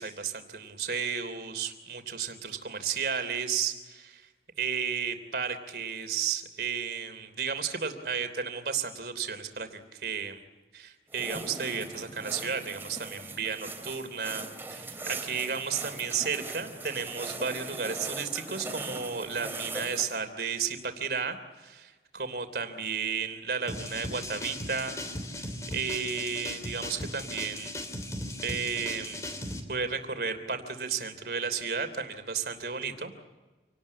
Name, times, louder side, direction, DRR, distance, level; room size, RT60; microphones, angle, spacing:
voice 1, 0.0-4.3 4.6-10.4 10.7-25.0 25.4-27.8 28.4-29.3 29.7-33.1, right 6 dB, 65° right, 8 dB, 3.1 m, -33 dB
sound 1, 11.1-20.2, right 2 dB, 15° right, 3.0 m, -40 dB
sound 2, 23.7-29.6, left 1 dB, 20° left, 3.2 m, -37 dB
27.5 x 19.0 x 8.5 m, 1.3 s
head